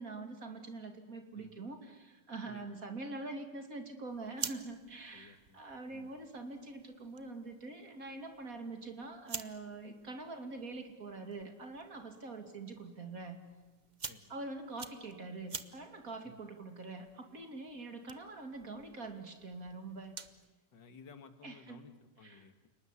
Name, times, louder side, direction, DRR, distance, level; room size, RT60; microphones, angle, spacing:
voice 1, 0.0-13.4 14.3-20.2 21.4-21.8 22.2-22.4, right 3 dB, 50° right, 6 dB, 3.0 m, -44 dB
sound 1, 4.1-20.5, right 5 dB, 30° right, 0.9 m, -50 dB
voice 2, 5.1-5.6 5.9-6.1 14.1-14.3 16.2-16.4 20.7-22.7, left 4 dB, 85° left, 9 dB, 2.4 m, -56 dB
29.5 x 19.5 x 9.8 m, 1.2 s
omnidirectional pair, 1.9 m